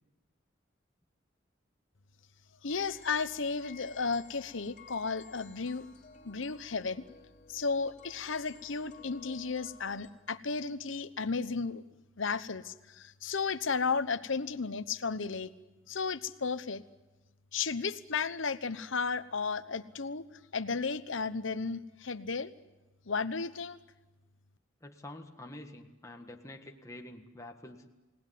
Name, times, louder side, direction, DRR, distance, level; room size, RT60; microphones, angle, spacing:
voice 1, 2.6-5.9 6.2-7.0 7.5-11.8 12.2-15.5 15.9-16.8 17.5-20.3 20.5-22.5 23.1-23.8, left 4 dB, 75° left, 13 dB, 1.0 m, -34 dB
sound 1, 2.7-10.1, left 5 dB, 40° left, 2.9 m, -56 dB
voice 2, 24.8-27.9, left 1 dB, 15° left, 3 dB, 1.6 m, -47 dB
29.0 x 18.5 x 9.4 m, 1.1 s
head